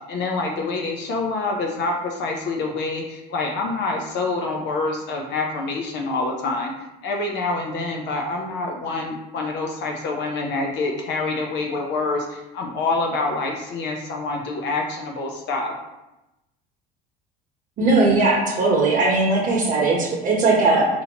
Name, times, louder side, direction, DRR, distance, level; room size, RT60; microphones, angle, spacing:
voice 1, 0.0-6.7 7.0-15.7, left 3 dB, 60° left, 1 dB, 0.6 m, -26 dB
voice 2, 17.8-20.9, right 3 dB, 45° right, -4 dB, 1.0 m, -19 dB
4.3 x 2.7 x 2.8 m, 0.96 s
supercardioid pair, 90°, 20 cm